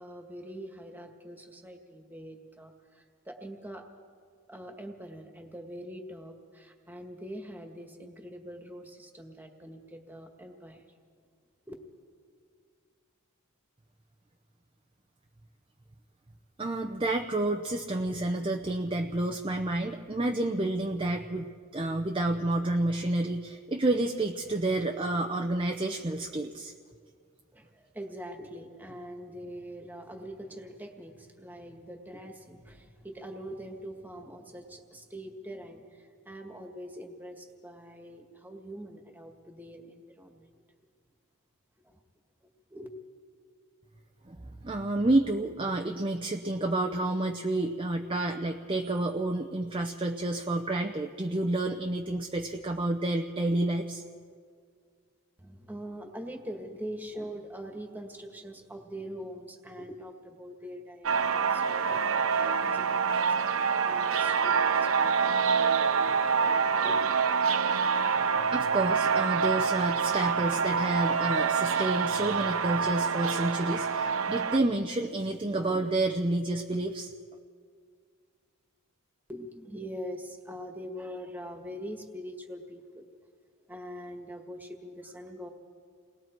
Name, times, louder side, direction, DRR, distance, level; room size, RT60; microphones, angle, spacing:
voice 1, 0.0-3.9 4.5-10.8 11.7-11.8 27.5-40.5 41.8-42.0 42.7-42.9 55.4-65.4 66.5-67.0 79.3-83.0 83.7-85.5, equal, 10° right, 3 dB, 1.7 m, -43 dB
voice 2, 16.6-26.7 44.3-54.0 68.5-77.1, right 2 dB, 25° right, 4 dB, 0.7 m, -29 dB
sound 1, 61.0-74.6, right 6 dB, 70° right, 0.8 m, -26 dB
29.0 x 20.5 x 4.6 m, 2.1 s
head